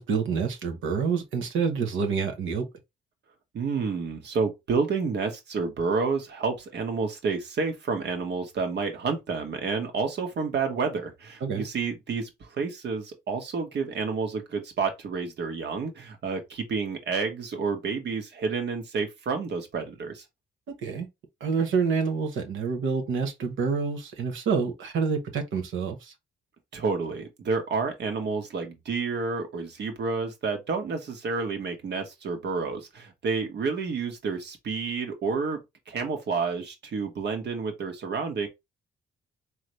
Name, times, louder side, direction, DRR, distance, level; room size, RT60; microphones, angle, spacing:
voice 1, 0.0-2.7 11.4-11.6 20.7-21.1 21.4-26.1, right 5 dB, 75° right, 1.2 m, -27 dB
voice 2, 3.5-20.2 26.7-35.6 35.9-38.5, right 4 dB, 60° right, 1.6 m, -29 dB
4.0 x 3.1 x 3.2 m
cardioid pair, 90°, 20 cm